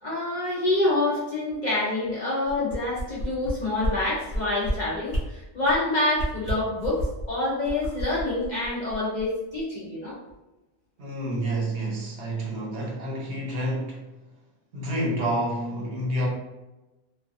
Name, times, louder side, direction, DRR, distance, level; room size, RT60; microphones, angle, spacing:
voice 1, 0.0-10.2, left 2 dB, 55° left, -6 dB, 0.5 m, -27 dB
sound 1, 2.5-3.5 3.8-3.9 4.3-4.7 5.1-5.2 5.6-5.8 6.1-7.3 7.6-9.2 9.6-9.7, equal, 35° right, 0.6 m, -29 dB
voice 2, 11.0-14.2 14.7-16.3, right 1 dB, 75° right, -2 dB, 1.0 m, -29 dB
2.3 x 2.2 x 2.4 m, 1.0 s
omnidirectional pair, 1.1 m